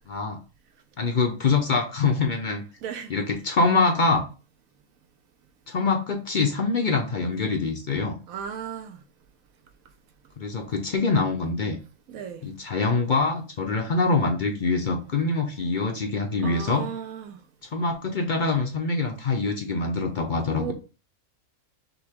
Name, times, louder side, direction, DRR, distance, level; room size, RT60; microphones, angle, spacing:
voice 1, 0.1-0.4 1.0-2.6 3.1-4.3 5.7-8.2 10.4-11.8 12.4-16.9 17.6-20.7, left 3 dB, 50° left, 0.6 m, -24 dB
voice 2, 2.8-3.1 8.3-9.0 12.1-12.4 16.4-17.4 20.6-20.7, right 8 dB, 80° right, 1.1 m, -35 dB
5.9 x 2.3 x 3.5 m
omnidirectional pair, 1.5 m